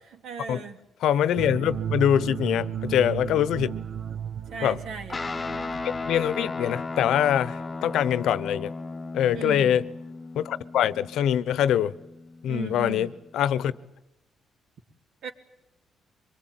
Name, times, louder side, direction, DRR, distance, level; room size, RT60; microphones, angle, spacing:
voice 1, 0.2-0.8 4.5-5.2 9.3-9.8 12.5-13.1 15.2-15.3, right 6 dB, 75° right, 2.8 m, -36 dB
voice 2, 1.0-3.7 4.6-4.8 6.1-8.7 9.1-9.8 10.3-11.9 12.4-13.7, left 10 dB, 80° left, 0.9 m, -24 dB
sound 1, 1.4-6.5, right 8 dB, 55° right, 0.8 m, -34 dB
Guitar, 5.1-13.9, left 3 dB, 25° left, 0.8 m, -36 dB
24.0 x 22.5 x 9.2 m
cardioid pair, 90°, 0 cm